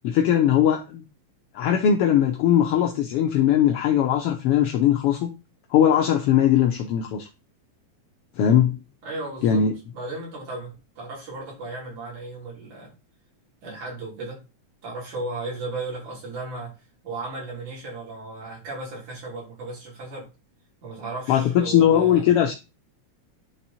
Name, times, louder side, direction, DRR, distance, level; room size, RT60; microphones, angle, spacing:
voice 1, 0.0-1.0 1.5-5.3 5.7-7.3 8.4-8.8 9.4-9.7 21.3-22.5, left 9 dB, 70° left, 1.4 m, -20 dB
voice 2, 9.0-9.6 9.9-12.9 13.6-14.4 14.8-16.7 17.0-20.3 20.8-22.4, right 2 dB, 85° right, 4.9 m, -35 dB
10.5 x 3.6 x 4.2 m
omnidirectional pair, 3.3 m